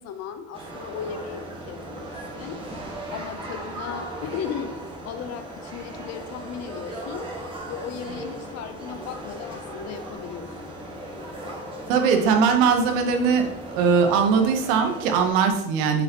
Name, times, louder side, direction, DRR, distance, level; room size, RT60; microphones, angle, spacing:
voice 1, 0.0-2.7 3.1-7.3 7.7-10.8, left 8 dB, 45° left, 9 dB, 0.8 m, -36 dB
sound 1, 0.5-15.3, right 1 dB, 15° right, 1.8 m, -37 dB
voice 2, 11.9-16.0, right 6 dB, 70° right, 5 dB, 1.3 m, -20 dB
6.9 x 6.6 x 3.0 m, 0.88 s
supercardioid pair, 120°, 36 cm